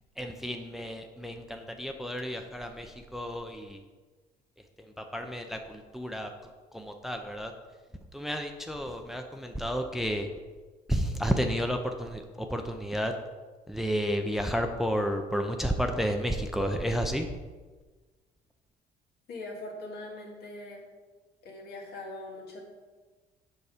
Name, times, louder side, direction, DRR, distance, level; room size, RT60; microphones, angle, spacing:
voice 1, 0.2-3.8 4.8-7.5 8.1-10.3 10.9-13.1 13.7-17.3, equal, ahead, 4 dB, 0.6 m, -31 dB
voice 2, 19.3-20.9 21.4-22.6, left 2 dB, 70° left, -1 dB, 2.3 m, -41 dB
6.9 x 5.9 x 5.0 m, 1.3 s
cardioid pair, 110°, 17 cm